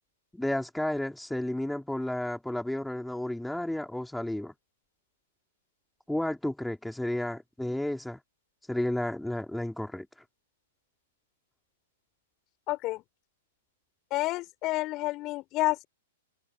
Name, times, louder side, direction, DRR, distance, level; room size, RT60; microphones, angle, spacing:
voice 1, 0.3-4.5 6.1-8.2 8.7-10.1, left 1 dB, 5° left, 3.8 m, -32 dB
voice 2, 12.7-13.0 14.1-15.8, left 19 dB, 35° left, 5.4 m, -29 dB
open air
figure-of-eight pair, 110°, 0 cm